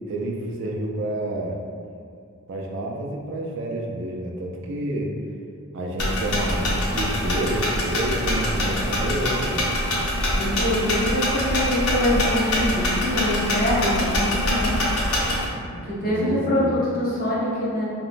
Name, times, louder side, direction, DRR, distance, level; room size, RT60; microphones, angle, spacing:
voice 1, 0.1-1.6 2.5-5.1 5.7-9.7 16.0-16.8, right 1 dB, 60° right, 0 dB, 0.3 m, -29 dB
sound 1, 6.0-15.5, left 1 dB, 90° left, 0.6 m, -24 dB
voice 2, 10.4-14.7 15.9-17.8, left 1 dB, 40° left, -7 dB, 0.6 m, -24 dB
2.9 x 2.1 x 2.5 m, 2.3 s
head